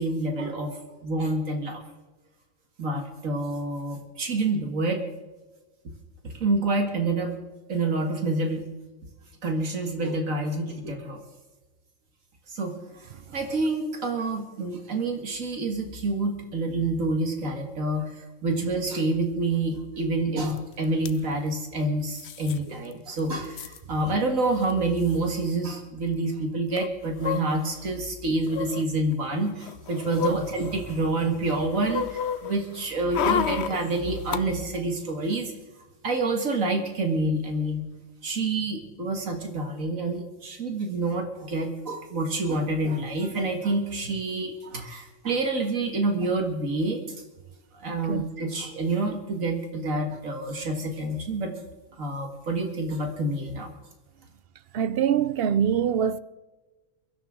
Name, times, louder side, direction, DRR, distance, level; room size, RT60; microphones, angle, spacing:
voice 1, 0.0-1.8 2.8-5.0 6.2-7.3 7.7-8.7 9.4-11.2 12.5-35.5 36.0-37.8 38.2-47.0 47.7-51.5 52.0-53.7, right 2 dB, 80° right, 2.2 m, -28 dB
sound 1, 20.6-20.7 20.8-21.2 22.1-22.6 22.9-23.0 23.2-23.8 24.6-24.7 25.0-25.2 26.7-27.9 28.5-28.8 29.5-31.1 31.5-34.4 34.7-34.8, left 8 dB, 60° left, 1.0 m, -31 dB
voice 2, 54.7-56.2, right 8 dB, 60° right, 0.7 m, -24 dB
23.0 x 12.5 x 3.7 m
omnidirectional pair, 1.4 m